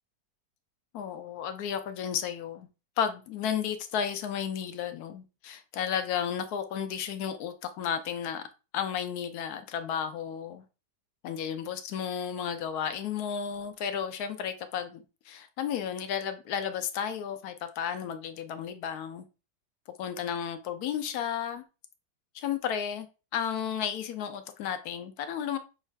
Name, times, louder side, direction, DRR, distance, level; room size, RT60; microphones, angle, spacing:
voice 1, 0.9-2.7 3.0-8.5 8.7-10.6 11.2-19.3 20.0-21.6 22.3-23.1 23.3-25.6, left 8 dB, 70° left, 1.0 m, -33 dB
6.3 x 2.4 x 3.3 m
omnidirectional pair, 1.9 m